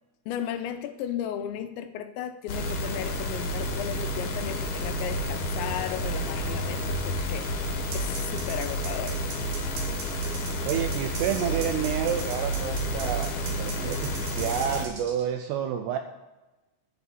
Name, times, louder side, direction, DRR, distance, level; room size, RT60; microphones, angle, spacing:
voice 1, 0.3-7.5 7.9-9.2, left 10 dB, 85° left, 9 dB, 2.8 m, -35 dB
sound 1, 2.5-14.8, equal, 65° left, 2.0 m, -30 dB
sound 2, 7.9-15.2, right 5 dB, 65° right, 3.8 m, -39 dB
voice 2, 10.7-16.0, right 9 dB, 85° right, 6 dB, 2.4 m, -29 dB
12.0 x 5.1 x 8.3 m, 1.1 s
omnidirectional pair, 5.4 m